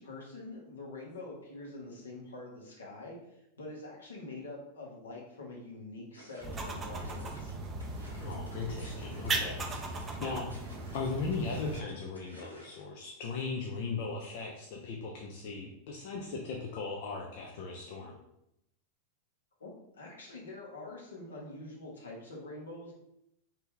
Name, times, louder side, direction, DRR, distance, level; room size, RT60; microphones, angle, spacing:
voice 1, 0.0-7.5 19.6-22.9, left 2 dB, 70° left, -2 dB, 1.1 m, -45 dB
sound 1, 6.1-12.9, equal, 85° left, 0.8 m, -55 dB
sound 2, 6.4-11.8, right 3 dB, 20° right, 0.5 m, -38 dB
voice 2, 8.2-10.5 10.9-18.1, left 4 dB, 50° left, -1 dB, 0.5 m, -38 dB
3.2 x 2.8 x 3.6 m, 0.82 s
figure-of-eight pair, 90°, 0 cm